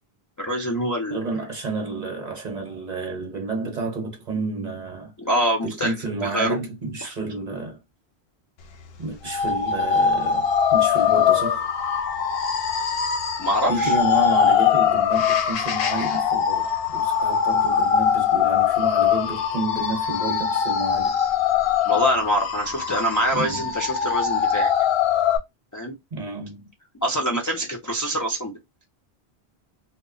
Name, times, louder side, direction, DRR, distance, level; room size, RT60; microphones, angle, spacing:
voice 1, 0.4-1.2 5.2-5.9 6.2-6.6 7.0-7.1 13.4-14.0 21.9-24.7 25.7-25.9 27.0-28.6, equal, 30° left, 0.3 m, -25 dB
voice 2, 1.1-5.1 5.6-7.8 9.0-11.7 13.7-21.2 23.3-23.7 26.1-26.7, right 3 dB, 45° right, 0.8 m, -30 dB
sound 1, 9.3-25.4, left 8 dB, 70° left, 0.8 m, -22 dB
2.1 x 2.0 x 3.7 m
omnidirectional pair, 1.1 m